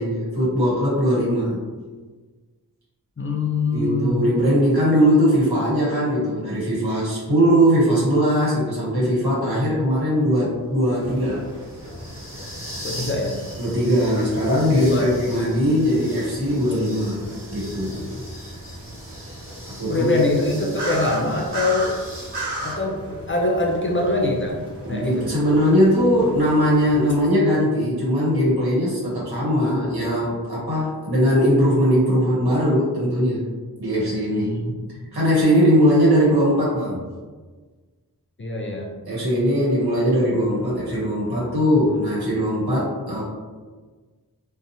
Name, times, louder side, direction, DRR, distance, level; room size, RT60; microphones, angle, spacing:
voice 1, 0.0-1.6 3.7-11.4 13.6-18.2 19.8-20.1 24.8-33.5 33.8-34.5 35.1-37.0 39.1-43.2, equal, 70° right, -7 dB, 1.0 m, -20 dB
voice 2, 3.2-4.2 12.8-13.4 14.7-15.4 19.9-22.0 22.6-24.6 24.9-25.3 34.3-34.8 38.4-38.9, left 2 dB, 30° left, -1 dB, 0.4 m, -24 dB
sound 1, 9.3-22.4, equal, 35° right, 1.2 m, -41 dB
sound 2, 11.0-27.2, right 1 dB, 85° right, 0.6 m, -37 dB
2.7 x 2.0 x 2.6 m, 1.4 s
wide cardioid pair, 45°, 39 cm